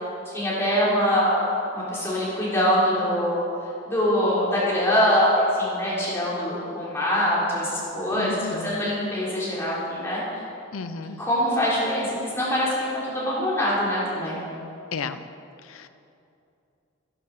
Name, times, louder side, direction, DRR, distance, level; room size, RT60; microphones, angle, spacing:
voice 1, 0.2-1.5 1.7-3.4 3.9-10.2 11.2-12.7 13.1-14.4, equal, 10° left, -8 dB, 3.4 m, -23 dB
voice 2, 8.2-8.8 10.7-11.2 14.9-15.2 15.7-15.9, left 4 dB, 90° left, 11 dB, 0.6 m, -33 dB
11.0 x 11.0 x 6.4 m, 2.7 s
head